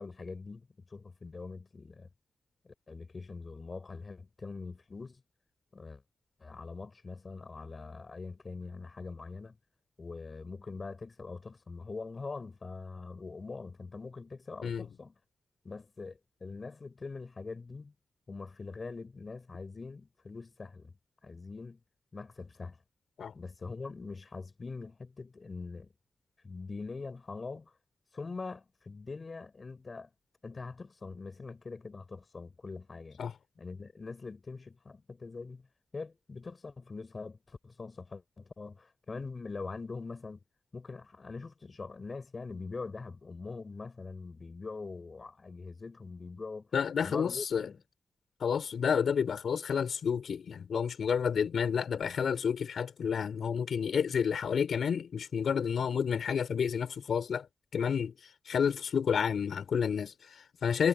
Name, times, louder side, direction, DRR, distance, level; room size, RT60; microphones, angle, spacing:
voice 1, 0.0-2.1 2.6-5.2 5.7-6.0 6.4-9.6 10.0-15.1 15.6-17.9 18.3-20.9 21.2-21.8 22.1-22.8 23.3-25.9 26.4-27.7 28.1-30.1 30.4-33.2 33.6-35.7 35.9-40.4 40.7-46.7 47.0-47.8, left 4 dB, 55° left, 6.4 m, -43 dB
voice 2, 46.7-47.7 48.4-57.5 57.7-58.1 58.5-60.9, left 7 dB, 85° left, 5.7 m, -30 dB
cardioid pair, 45°, 0 cm